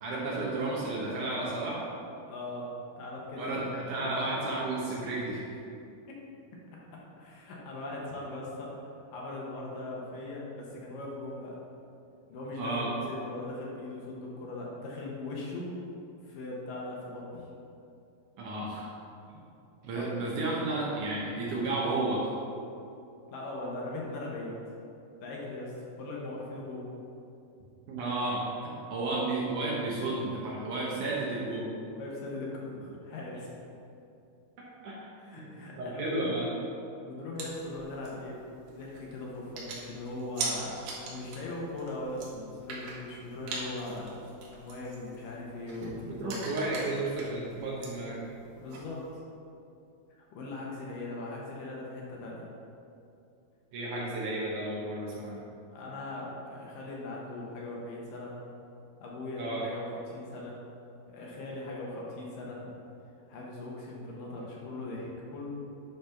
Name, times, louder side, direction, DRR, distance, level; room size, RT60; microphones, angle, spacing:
voice 1, 0.0-1.8 3.4-5.5 12.6-12.9 18.4-18.9 19.8-22.3 27.9-31.7 34.8-36.5 46.2-48.2 53.7-55.5 59.4-59.6, right 2 dB, 70° right, -4 dB, 2.1 m, -32 dB
voice 2, 2.2-2.7 3.0-4.2 6.1-6.2 7.2-8.7 9.1-11.6 12.3-15.7 16.2-17.5 19.9-20.1 23.3-24.5 25.2-26.9 31.9-33.5 35.2-36.3 37.0-38.5 38.8-44.2 44.5-46.5 48.6-49.1 50.1-52.5 55.7-58.4 59.0-60.6 61.1-62.7 63.3-65.5, left 2 dB, 70° left, -3 dB, 2.6 m, -39 dB
sound 1, 37.4-49.1, right 3 dB, 85° right, 3.5 m, -43 dB
10.5 x 4.2 x 5.8 m, 2.7 s
omnidirectional pair, 4.5 m